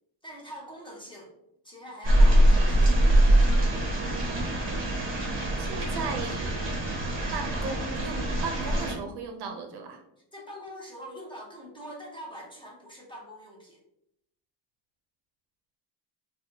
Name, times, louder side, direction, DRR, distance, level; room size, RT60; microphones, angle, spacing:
voice 1, 0.2-1.3 1.6-3.0 10.3-13.8, equal, 10° left, -3 dB, 0.6 m, -43 dB
sound 1, 2.0-8.9, right 1 dB, 25° right, 0.9 m, -23 dB
voice 2, 5.6-6.6 7.3-10.0, right 4 dB, 60° right, 5 dB, 0.6 m, -36 dB
4.1 x 2.3 x 2.7 m, 0.80 s
cardioid pair, 145°, 45 cm